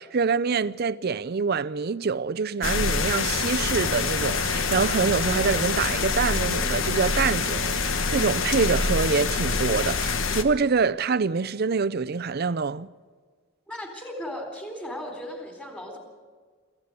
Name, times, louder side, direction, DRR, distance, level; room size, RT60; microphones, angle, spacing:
voice 1, 0.0-12.9, right 5 dB, 50° right, 0.5 m, -25 dB
sound 1, 2.6-10.4, left 4 dB, 80° left, 1.3 m, -26 dB
voice 2, 13.7-16.0, left 1 dB, 5° left, 3.9 m, -36 dB
24.5 x 15.5 x 8.2 m
head